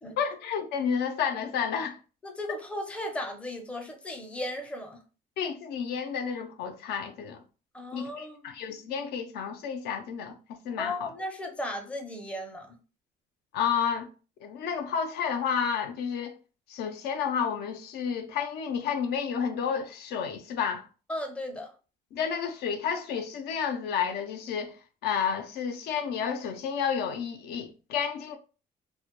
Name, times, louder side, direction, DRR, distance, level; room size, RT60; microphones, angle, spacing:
voice 1, 0.2-2.0 5.4-7.4 7.9-11.1 13.5-14.1 14.4-16.4 16.7-20.8 22.1-24.8 25.0-28.4, left 7 dB, 75° left, 0.4 m, -31 dB
voice 2, 2.2-5.0 7.7-8.5 10.8-12.8 21.1-21.7, left 1 dB, 5° left, 0.5 m, -36 dB
2.1 x 2.1 x 2.8 m
cardioid pair, 110°, 17 cm